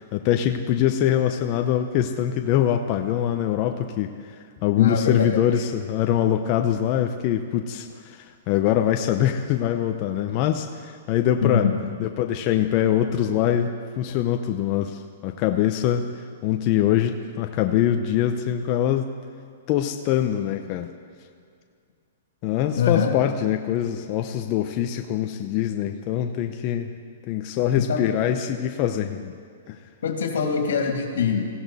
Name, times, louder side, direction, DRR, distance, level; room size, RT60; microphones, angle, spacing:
voice 1, 0.0-11.7 12.0-16.1 16.4-19.1 19.7-20.9 22.4-26.9 27.3-29.3 29.7-29.8, left 10 dB, 30° left, 5 dB, 0.6 m, -23 dB
voice 2, 4.8-5.4 11.4-11.8 22.8-23.1 27.8-28.1 30.0-31.5, left 6 dB, 80° left, 2 dB, 2.7 m, -23 dB
19.5 x 15.5 x 4.1 m, 2.2 s
hypercardioid pair, 160°, 0 cm